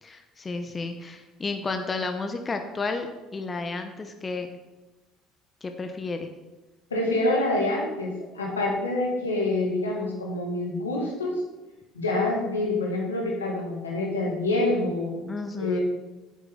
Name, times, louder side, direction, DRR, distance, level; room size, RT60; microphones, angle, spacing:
voice 1, 0.0-4.6 5.6-6.3 15.3-15.8, left 3 dB, 30° left, 6 dB, 1.0 m, -32 dB
voice 2, 6.9-11.3 11.9-15.2 15.5-15.8, left 2 dB, 90° left, -1 dB, 2.0 m, -26 dB
9.6 x 8.0 x 3.9 m, 1.1 s
hypercardioid pair, 60°, 0 cm